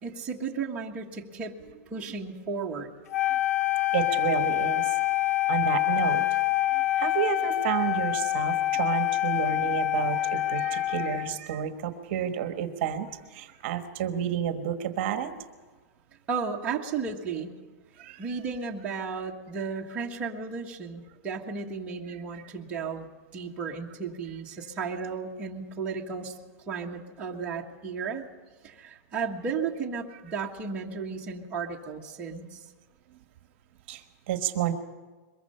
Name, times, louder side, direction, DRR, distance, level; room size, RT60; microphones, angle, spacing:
voice 1, 0.0-1.6 1.9-2.9 16.3-17.5 18.2-26.4 26.7-28.3 28.6-32.6, right 5 dB, 15° right, -3 dB, 1.5 m, -34 dB
Wind instrument woodwind instrument, 3.1-11.4, left 15 dB, 75° left, 0.8 m, -26 dB
voice 2, 3.9-5.0 5.5-6.4 6.7-15.3 18.0-18.4 22.3-22.4 33.9-34.7, right 9 dB, 45° right, 7 dB, 1.4 m, -30 dB
22.5 x 21.5 x 5.7 m, 1.4 s
supercardioid pair, 175°, 8 cm